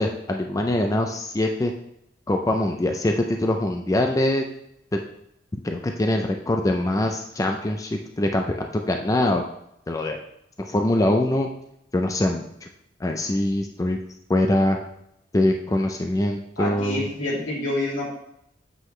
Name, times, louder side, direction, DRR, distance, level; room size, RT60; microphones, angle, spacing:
voice 1, 0.0-1.7 2.3-4.5 4.9-5.0 5.6-9.4 9.9-10.2 10.6-11.5 11.9-12.7 13.0-14.0 14.3-14.8 15.3-17.0, left 1 dB, 20° left, 3 dB, 0.4 m, -23 dB
voice 2, 16.6-18.1, left 1 dB, 85° left, -5 dB, 2.6 m, -27 dB
7.7 x 4.9 x 3.1 m, 0.77 s
head